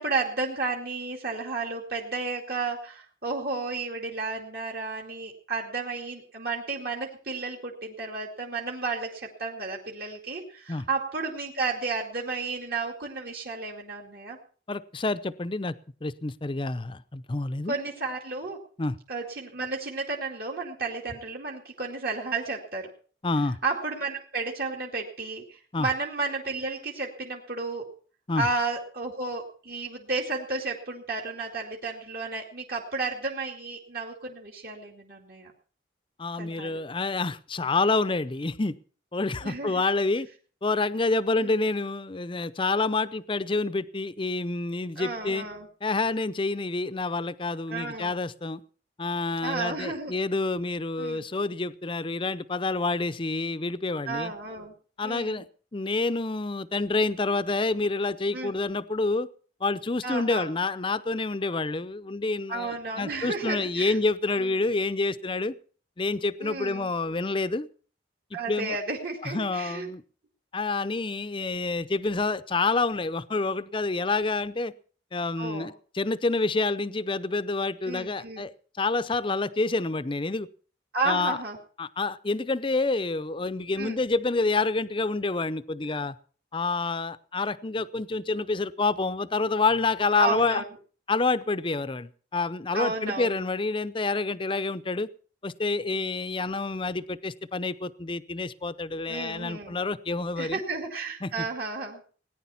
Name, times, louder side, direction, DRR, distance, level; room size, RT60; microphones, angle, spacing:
voice 1, 0.0-14.4 17.7-18.6 19.1-22.9 23.6-27.9 28.4-35.5 36.4-36.8 39.4-39.8 41.4-41.5 45.0-45.7 47.7-48.1 49.4-50.1 51.0-51.2 54.1-54.7 55.0-55.4 58.3-58.5 60.0-60.5 62.5-64.0 64.3-64.5 66.4-66.9 68.3-69.9 75.4-75.7 77.9-78.4 80.9-81.6 83.8-84.0 90.2-90.7 92.7-93.4 99.1-99.7 100.4-102.0, right 3 dB, 55° right, -1 dB, 2.4 m, -32 dB
voice 2, 14.7-15.7 16.0-17.7 18.8-19.0 23.2-23.6 25.7-25.9 28.3-28.5 36.2-38.8 39.1-40.3 40.6-45.5 45.8-48.6 49.0-54.3 55.0-55.5 55.7-59.3 59.6-65.5 66.0-67.7 68.5-68.8 69.2-70.0 70.5-74.7 75.1-78.5 78.8-80.5 81.1-81.4 81.8-86.2 86.5-90.6 91.1-95.1 95.4-100.6 101.2-101.5, left 3 dB, 30° left, 15 dB, 0.6 m, -28 dB
18.5 x 10.0 x 5.7 m, 0.42 s
head